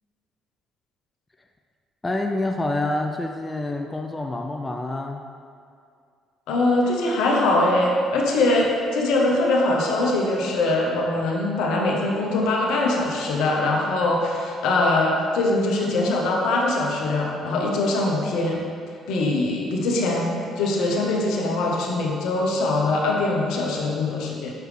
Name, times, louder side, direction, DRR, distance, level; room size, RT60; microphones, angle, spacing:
voice 1, 2.0-5.2, left 2 dB, 20° left, 4 dB, 0.4 m, -27 dB
voice 2, 6.5-18.6 19.1-24.5, left 2 dB, 70° left, -1 dB, 0.9 m, -22 dB
6.2 x 4.7 x 3.3 m, 2.3 s
hypercardioid pair, 55°, 0 cm